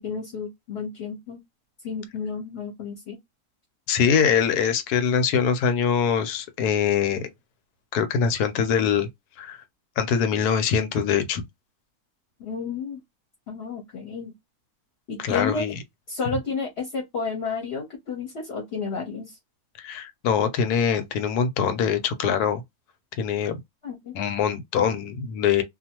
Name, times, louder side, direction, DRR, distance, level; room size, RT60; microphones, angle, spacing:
voice 1, 0.0-1.4 1.8-3.2 12.4-13.0 13.5-14.3 15.1-15.6 16.1-19.4 23.8-24.1, left 5 dB, 55° left, 0.8 m, -31 dB
voice 2, 3.9-7.3 7.9-9.1 9.4-9.6 10.0-11.4 15.2-15.7 19.8-22.6 23.2-23.6 24.1-25.6, left 7 dB, 90° left, 1.2 m, -23 dB
2.5 x 2.3 x 2.8 m
omnidirectional pair, 1.6 m